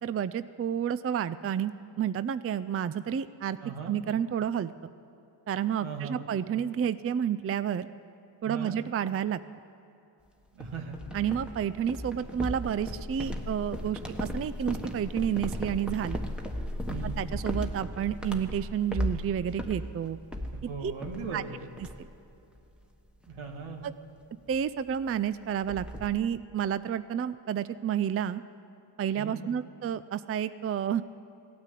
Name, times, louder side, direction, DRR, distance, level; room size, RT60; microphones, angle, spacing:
voice 1, 0.0-3.6 3.9-4.9 5.5-7.9 8.4-9.4 11.1-16.2 17.0-20.2 20.8-20.9 21.3-21.4 22.0-22.1 23.8-23.9 24.5-28.4 29.0-31.0, right 9 dB, 30° right, 14 dB, 0.4 m, -30 dB
voice 2, 3.6-3.9 5.8-6.3 8.5-8.7 10.5-11.0 16.9-17.2 20.7-21.6 23.3-23.9 29.2-29.4, right 6 dB, 80° right, 3 dB, 2.0 m, -38 dB
sound 1, 10.6-21.5 21.8-22.2 22.6-22.8 23.2-23.5 24.5-24.6 24.9-25.0 25.2-26.2, equal, ahead, 1.3 m, -36 dB
16.5 x 9.6 x 8.3 m, 2.7 s
cardioid pair, 70°, 48 cm